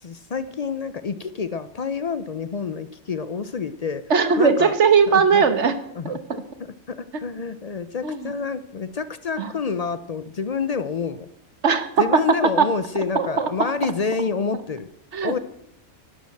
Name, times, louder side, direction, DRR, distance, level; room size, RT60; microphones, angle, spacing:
voice 1, 0.0-4.0 4.4-4.7 5.1-5.4 5.9-11.3 12.0-14.9 15.2-15.4, left 5 dB, 65° left, 13 dB, 0.4 m, -28 dB
voice 2, 4.1-5.8 6.1-6.4 8.0-8.3 9.4-9.5 11.6-12.7 13.1-13.5 15.1-15.4, right 5 dB, 55° right, 10 dB, 1.4 m, -19 dB
11.0 x 10.5 x 7.6 m, 0.76 s
omnidirectional pair, 1.5 m